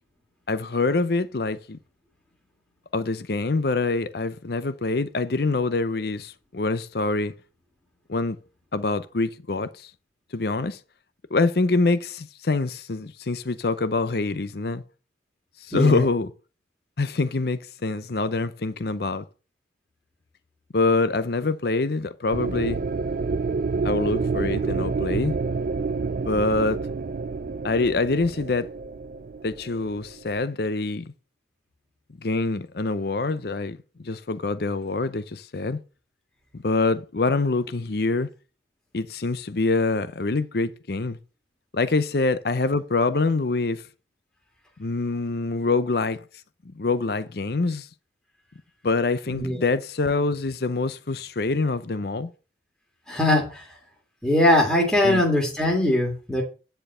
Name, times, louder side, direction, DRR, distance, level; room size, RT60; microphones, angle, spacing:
voice 1, 0.5-1.8 2.9-7.3 8.1-8.4 8.7-9.9 10.3-10.8 11.3-14.8 15.6-16.3 17.0-19.2 20.7-22.8 23.8-25.3 26.2-26.8 27.6-28.7 29.4-31.1 32.2-35.8 36.5-38.3 38.9-41.2 41.7-43.8 44.8-46.2 46.6-47.9 48.8-52.3 55.0-55.2, left 3 dB, 55° left, 0.6 m, -25 dB
voice 2, 15.7-16.1 49.3-49.6 53.1-53.7 54.2-56.4, left 1 dB, 5° left, 2.0 m, -21 dB
sound 1, 22.3-30.4, right 4 dB, 50° right, 0.3 m, -28 dB
10.0 x 4.6 x 6.7 m
head